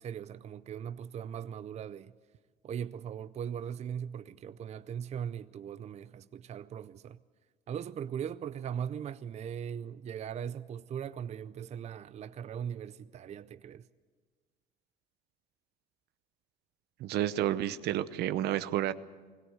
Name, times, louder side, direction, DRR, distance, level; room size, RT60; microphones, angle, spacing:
voice 1, 0.0-2.1 2.6-7.2 7.7-13.9, right 8 dB, 40° right, 0.5 m, -39 dB
voice 2, 17.0-18.9, right 13 dB, 75° right, 0.8 m, -30 dB
21.0 x 16.5 x 7.9 m
cardioid pair, 110°, 17 cm